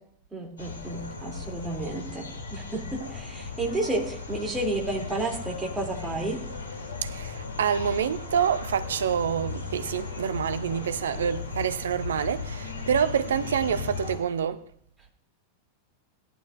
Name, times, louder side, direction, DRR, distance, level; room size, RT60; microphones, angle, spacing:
voice 1, 0.3-6.4, right 2 dB, 10° right, 2.9 m, -31 dB
sound 1, 0.6-14.2, left 4 dB, 70° left, 3.1 m, -36 dB
voice 2, 7.0-14.7, right 8 dB, 65° right, 0.6 m, -27 dB
17.5 x 11.0 x 2.6 m
figure-of-eight pair, 90°, 0 cm